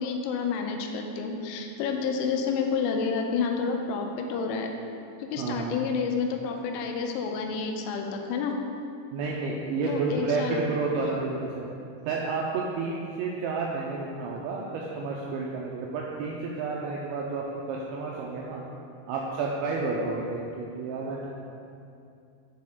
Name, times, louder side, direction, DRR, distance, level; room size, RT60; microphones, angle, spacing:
voice 1, 0.0-4.7 5.2-8.5 9.9-10.7, left 5 dB, 80° left, 3 dB, 3.0 m, -29 dB
voice 2, 5.4-5.9 9.1-11.7 12.0-18.6 19.1-21.4, right 3 dB, 90° right, -2 dB, 2.6 m, -31 dB
10.5 x 4.7 x 3.6 m, 2.6 s
omnidirectional pair, 5.8 m